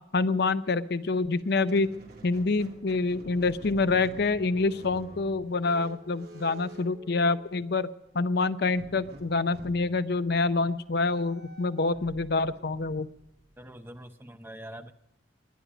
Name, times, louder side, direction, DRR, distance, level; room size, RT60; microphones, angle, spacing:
voice 1, 0.1-1.9 2.2-7.9 8.1-13.1, left 3 dB, 55° left, 13 dB, 0.6 m, -26 dB
Squeak, 1.4-7.8 8.7-13.9, right 1 dB, 55° right, 2.2 m, -49 dB
voice 2, 13.6-14.9, right 1 dB, 10° right, 8 dB, 0.7 m, -44 dB
21.5 x 10.5 x 5.0 m, 0.87 s
head